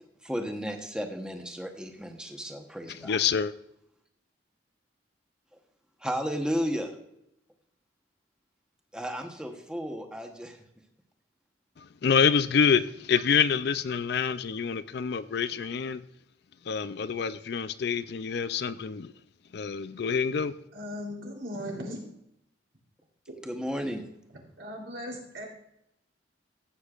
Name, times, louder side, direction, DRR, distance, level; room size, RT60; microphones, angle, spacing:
voice 1, 0.2-3.2 6.0-6.9 8.9-10.6 23.4-24.0, equal, 5° right, 3 dB, 1.0 m, -33 dB
voice 2, 3.0-3.5 11.8-16.0 16.7-19.1 19.5-20.5, left 6 dB, 55° left, 13 dB, 0.4 m, -27 dB
voice 3, 20.7-22.0 24.6-25.4, equal, 85° right, 0 dB, 3.3 m, -37 dB
15.0 x 8.2 x 2.4 m, 0.78 s
head